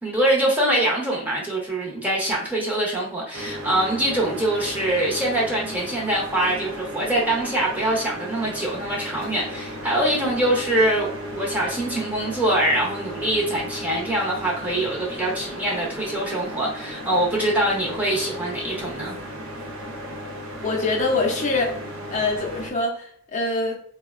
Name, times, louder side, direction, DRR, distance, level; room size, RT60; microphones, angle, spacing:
voice 1, 0.0-19.2, right 1 dB, 5° right, -4 dB, 0.6 m, -24 dB
sound 1, 3.3-22.7, equal, 70° right, 0.5 m, -35 dB
voice 2, 20.6-21.7 22.1-23.8, left 3 dB, 35° left, -1 dB, 0.5 m, -24 dB
4.0 x 2.1 x 2.4 m, 0.65 s
head